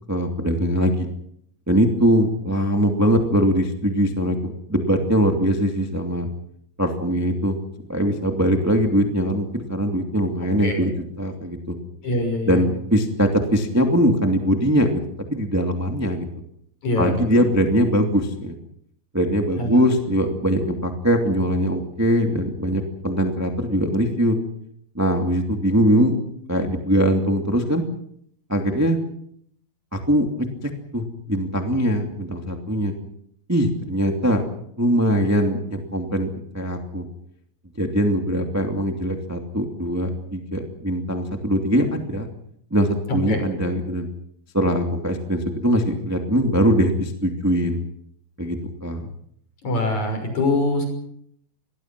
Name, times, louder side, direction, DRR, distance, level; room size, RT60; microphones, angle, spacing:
voice 1, 0.1-1.1 1.7-6.3 6.8-7.6 7.9-11.7 12.4-15.0 15.3-16.2 17.0-18.5 19.1-24.4 24.9-26.2 26.5-27.8 28.5-29.0 29.9-32.9 33.5-34.4 34.8-37.0 37.8-42.3 42.7-44.1 44.5-47.8 48.4-49.1, equal, 10° right, 3 dB, 0.7 m, -21 dB
voice 2, 12.0-12.6 16.8-17.4 19.6-19.8 43.3-43.4 49.6-50.8, left 2 dB, 40° left, 6 dB, 7.3 m, -24 dB
27.0 x 21.0 x 6.1 m, 0.70 s
omnidirectional pair, 5.3 m